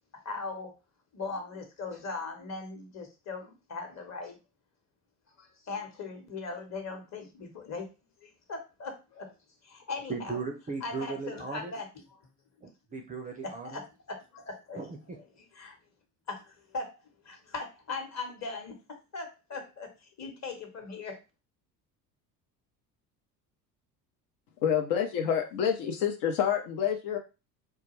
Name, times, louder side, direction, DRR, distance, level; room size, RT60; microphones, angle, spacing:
voice 1, 0.2-0.7 1.1-4.4 5.4-7.9 8.2-9.3 9.6-10.4 10.8-12.2 13.3-14.8 15.1-15.2 15.5-15.8 16.3-21.2, left 4 dB, 35° left, 3 dB, 1.0 m, -39 dB
voice 2, 10.1-11.7 12.6-13.8 14.7-15.2, right 4 dB, 20° right, 2 dB, 0.4 m, -37 dB
voice 3, 24.6-27.2, left 8 dB, 65° left, 4 dB, 0.7 m, -28 dB
2.2 x 2.2 x 3.0 m, 0.29 s
hypercardioid pair, 65°, 48 cm